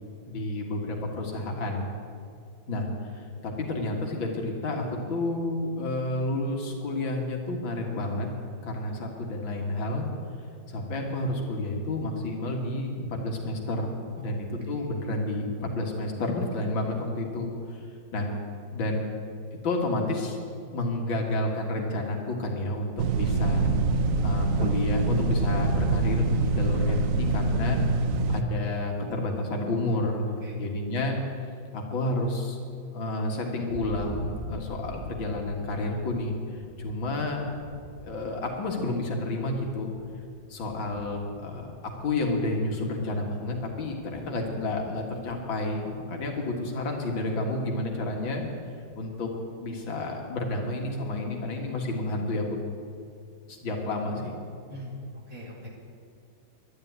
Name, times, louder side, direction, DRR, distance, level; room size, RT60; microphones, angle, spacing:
voice 1, 0.3-1.9 2.7-2.9 3.1-8.3 8.6-10.1 10.7-13.9 14.2-17.8 18.1-18.3 18.7-19.1 19.6-20.4 20.7-23.7 24.2-27.8 28.3-31.2 31.7-32.6 32.9-37.5 38.0-39.9 40.5-41.7 42.0-48.4 49.0-49.3 49.6-52.5 53.5-54.4, left 2 dB, 75° left, 1 dB, 2.6 m, -30 dB
sound 1, 23.0-28.4, right 3 dB, 75° right, 0.7 m, -25 dB
Thunder, 33.7-46.6 46.9-47.5 47.8-49.3, right 1 dB, 25° right, 1.2 m, -46 dB
voice 2, 55.3-55.7, left 1 dB, 45° right, -2 dB, 2.9 m, -41 dB
11.5 x 10.5 x 9.5 m, 2.3 s
omnidirectional pair, 2.1 m